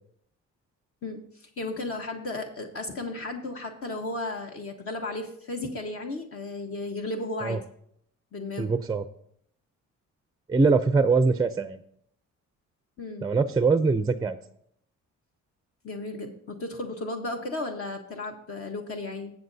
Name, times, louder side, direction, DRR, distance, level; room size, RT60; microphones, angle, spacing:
voice 1, 1.0-7.6 8.3-8.7 13.0-13.3 15.8-19.3, left 2 dB, 50° left, 2 dB, 1.3 m, -34 dB
voice 2, 8.6-9.0 10.5-11.8 13.2-14.4, right 4 dB, 15° right, 10 dB, 0.5 m, -23 dB
18.5 x 7.4 x 2.7 m, 0.71 s
cardioid pair, 90°, 30 cm